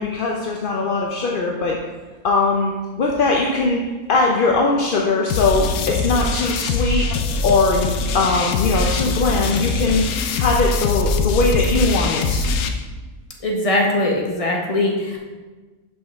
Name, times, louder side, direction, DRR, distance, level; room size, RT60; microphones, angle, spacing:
voice 1, 0.0-1.8 2.2-3.8 4.1-7.1 7.4-12.4, left 3 dB, 60° left, -1 dB, 0.6 m, -20 dB
sound 1, 5.3-12.7, left 3 dB, 85° left, 1.1 m, -22 dB
voice 2, 13.4-15.2, left 1 dB, 30° left, 0 dB, 0.9 m, -21 dB
6.1 x 5.4 x 3.4 m, 1.3 s
omnidirectional pair, 1.5 m